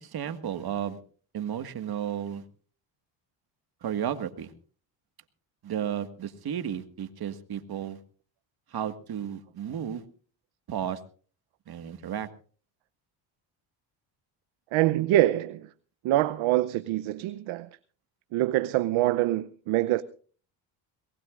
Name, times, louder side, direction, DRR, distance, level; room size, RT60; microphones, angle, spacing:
voice 1, 0.0-1.0 1.3-2.4 3.8-4.5 5.6-8.0 8.7-10.0 10.7-11.0 11.7-12.3, right 9 dB, 50° right, 1.9 m, -33 dB
voice 2, 14.7-15.7 16.0-17.7 18.3-20.0, right 15 dB, 75° right, 0.8 m, -25 dB
22.5 x 19.5 x 2.5 m
cardioid pair, 90°, 48 cm